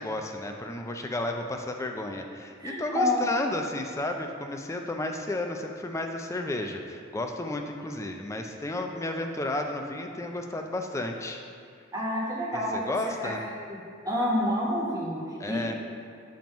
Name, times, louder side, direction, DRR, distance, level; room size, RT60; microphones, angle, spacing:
voice 1, 0.0-11.4 12.7-13.4 15.4-15.8, left 1 dB, 15° left, 4 dB, 0.4 m, -32 dB
voice 2, 2.6-3.2 11.9-13.0 13.2-13.3 13.7-13.8 14.0-15.8, left 1 dB, 20° right, -5 dB, 1.1 m, -28 dB
7.2 x 3.0 x 5.1 m, 2.3 s
head